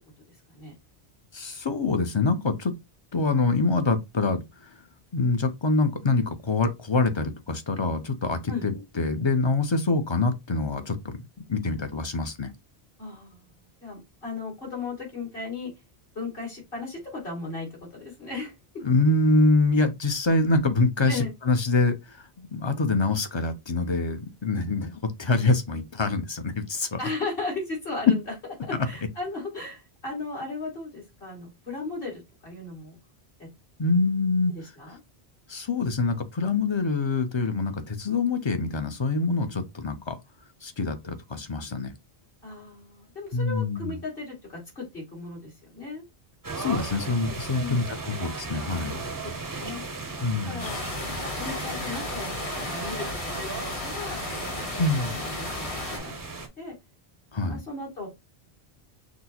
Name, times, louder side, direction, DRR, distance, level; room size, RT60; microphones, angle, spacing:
voice 1, 1.3-2.7 3.1-4.7 5.1-11.2 11.5-12.5 18.8-27.0 33.8-34.5 35.5-40.2 40.6-41.9 43.3-44.0 46.6-49.0 50.2-50.6 54.8-55.2 57.3-57.6, left 3 dB, 35° left, 0.5 m, -25 dB
voice 2, 13.0-15.7 16.1-18.8 21.1-21.3 27.0-28.3 28.6-33.0 33.4-33.5 34.5-35.0 42.4-46.1 47.6-48.0 49.2-49.9 50.4-53.6 53.8-54.7 55.2-56.2 56.6-56.8 57.5-58.1, left 3 dB, 60° left, 2.6 m, -36 dB
sound 1, 46.4-56.5, right 3 dB, 25° right, 0.5 m, -36 dB
sound 2, 50.6-56.0, left 2 dB, 85° left, 1.5 m, -34 dB
6.1 x 2.1 x 2.8 m
omnidirectional pair, 1.1 m